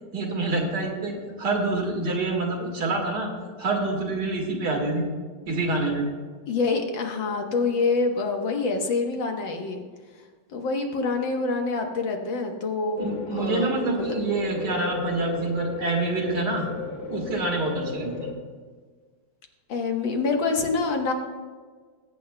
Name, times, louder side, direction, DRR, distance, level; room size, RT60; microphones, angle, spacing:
voice 1, 0.1-3.3 3.6-5.1 5.5-6.1 13.0-16.7 17.1-18.3, right 2 dB, 65° right, -1 dB, 2.5 m, -27 dB
voice 2, 6.5-9.8 10.5-13.0 13.3-14.2 19.7-21.1, left 4 dB, 85° left, 3 dB, 1.9 m, -26 dB
sound 1, 13.0-18.3, left 3 dB, 45° left, 1.7 m, -34 dB
20.5 x 8.5 x 2.2 m, 1.5 s
omnidirectional pair, 2.0 m